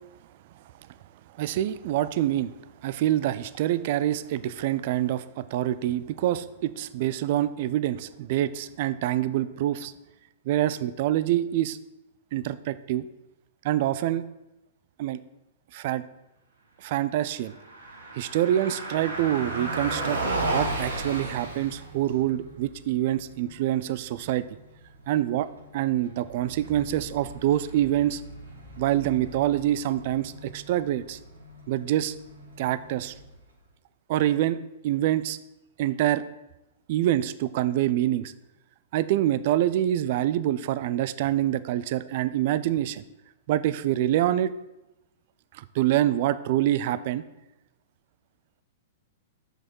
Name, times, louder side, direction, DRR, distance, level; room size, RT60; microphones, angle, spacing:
voice 1, 1.4-2.5 2.8-9.9 10.5-11.8 12.3-13.1 13.6-14.2 15.0-15.2 15.7-16.0 16.8-17.6 18.2-24.4 25.1-25.5 25.7-28.2 28.8-31.2 31.7-32.1 32.6-33.1 34.1-34.6 34.8-35.4 35.8-36.2 36.9-38.3 38.9-43.0 43.5-44.5 45.8-47.2, right 13 dB, 55° right, 15 dB, 0.3 m, -26 dB
Car passing by, 17.4-33.5, right 2 dB, 90° right, 1.5 m, -36 dB
6.3 x 5.3 x 4.5 m, 0.93 s
hypercardioid pair, 120°, 0 cm